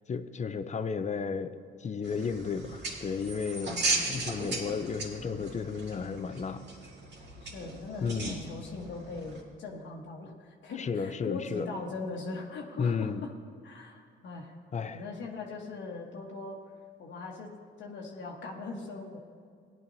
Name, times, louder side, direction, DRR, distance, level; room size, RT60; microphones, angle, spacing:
voice 1, 0.1-6.6 8.0-8.4 10.8-11.7 12.8-13.2 14.7-15.0, left 5 dB, 35° left, 10 dB, 0.6 m, -33 dB
sound 1, 2.0-9.4, right 3 dB, 60° right, 2.1 m, -37 dB
voice 2, 3.6-3.9 7.4-13.3 13.6-14.5 14.8-16.6 17.0-19.2, left 3 dB, 70° left, -1 dB, 1.3 m, -40 dB
16.0 x 10.5 x 2.8 m, 2.2 s
cardioid pair, 90°, 20 cm